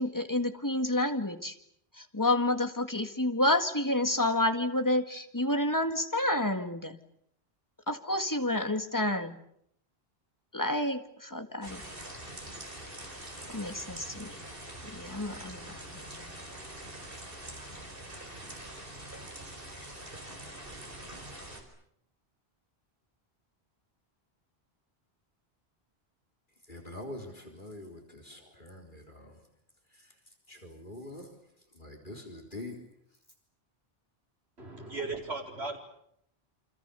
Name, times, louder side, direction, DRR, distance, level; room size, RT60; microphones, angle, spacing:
voice 1, 0.0-1.6 1.9-7.0 7.9-9.4 10.5-12.0 13.5-14.4 14.8-16.4, left 1 dB, 20° left, 7 dB, 1.9 m, -30 dB
sound 1, 11.6-21.6, right 1 dB, 60° right, 5.0 m, -44 dB
voice 2, 26.7-29.4 30.0-30.1 30.5-31.3 31.7-32.8, left 1 dB, 50° left, 2 dB, 4.1 m, -44 dB
voice 3, 34.6-35.8, right 3 dB, 80° right, 1 dB, 4.8 m, -36 dB
28.5 x 25.5 x 7.0 m, 0.72 s
omnidirectional pair, 1.1 m